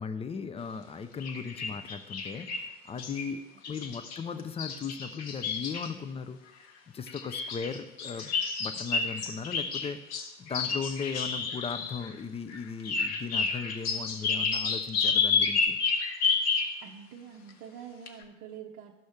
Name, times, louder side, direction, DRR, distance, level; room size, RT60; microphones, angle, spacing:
voice 1, 0.0-6.4 6.9-8.3 8.6-15.8, left 5 dB, 15° left, 11 dB, 0.4 m, -37 dB
sound 1, 1.2-2.7 3.0-3.3 3.6-5.9 7.1-12.1 12.5-16.8 17.5-17.6 18.1-18.2, left 5 dB, 45° left, 1.1 m, -30 dB
voice 2, 16.8-18.9, right 8 dB, 45° right, 1 dB, 0.7 m, -45 dB
12.0 x 6.3 x 3.5 m, 1.1 s
figure-of-eight pair, 70°, 37 cm